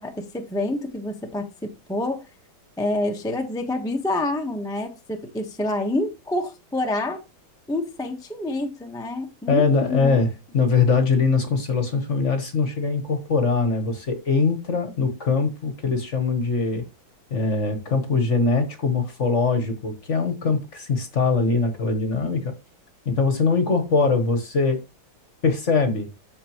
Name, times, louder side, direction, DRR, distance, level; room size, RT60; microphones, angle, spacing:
voice 1, 0.0-2.2 2.8-7.2 7.7-10.2, left 2 dB, 5° left, 0.7 m, -27 dB
voice 2, 9.5-16.8 17.3-22.5 23.0-24.8 25.4-26.1, left 4 dB, 40° left, 1.3 m, -22 dB
13.0 x 4.5 x 3.0 m
omnidirectional pair, 2.2 m